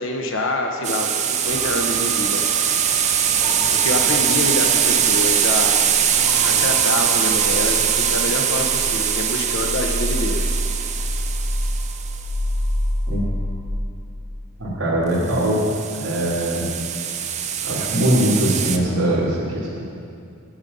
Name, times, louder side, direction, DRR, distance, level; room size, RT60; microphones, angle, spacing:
voice 1, 0.0-2.4 3.8-5.7 6.4-10.5, left 2 dB, 60° left, 2 dB, 0.9 m, -26 dB
sound 1, 0.8-12.3 15.2-18.8, right 8 dB, 35° right, 0.5 m, -22 dB
sound 2, 1.4-13.7, equal, 30° left, 2.0 m, -28 dB
voice 2, 14.6-15.6 15.9-16.6 17.6-19.8, right 1 dB, 75° right, -11 dB, 2.2 m, -21 dB
10.5 x 8.9 x 5.4 m, 2.4 s
head